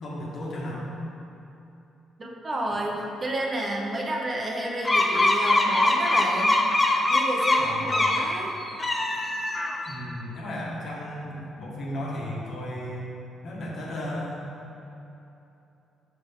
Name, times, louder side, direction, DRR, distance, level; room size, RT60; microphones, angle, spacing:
voice 1, 0.0-0.9 7.6-8.2 9.8-13.1 13.4-14.4, left 1 dB, 65° left, -5 dB, 1.5 m, -34 dB
voice 2, 2.2-6.6 7.1-8.6, right 1 dB, 30° right, -2 dB, 0.9 m, -30 dB
sound 1, 4.8-8.3 8.7-9.9, left 2 dB, 20° left, 0.6 m, -22 dB
5.9 x 5.3 x 3.7 m, 2.9 s
cardioid pair, 90°, 0 cm